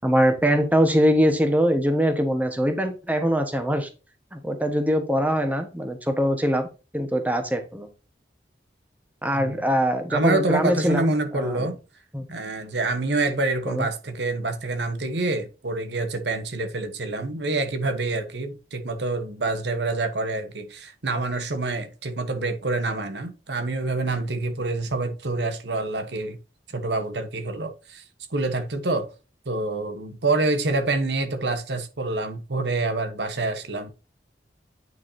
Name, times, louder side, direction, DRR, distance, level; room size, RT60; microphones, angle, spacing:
voice 1, 0.0-3.9 4.3-6.7 6.9-7.9 9.2-11.7 12.1-12.3 13.7-13.9, equal, 10° right, 1.3 m, -22 dB
voice 2, 10.1-11.8 12.3-26.4 26.7-28.0 28.3-29.1 29.5-33.9, right 2 dB, 80° right, 1.2 m, -27 dB
9.2 x 5.9 x 2.8 m
head